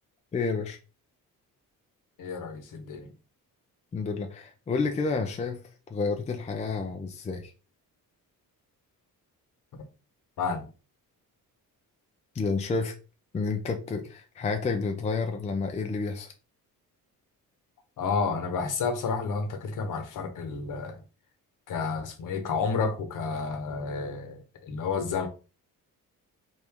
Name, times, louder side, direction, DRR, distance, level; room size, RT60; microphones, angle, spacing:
voice 1, 0.3-0.8 3.9-5.6 5.9-7.5 12.3-12.9 13.3-16.3, left 4 dB, 20° left, 0.5 m, -30 dB
voice 2, 2.2-3.1 10.4-10.7 18.0-21.0 21.7-25.3, left 5 dB, 60° left, 1.0 m, -30 dB
3.5 x 2.6 x 4.6 m
cardioid pair, 165°, 35 cm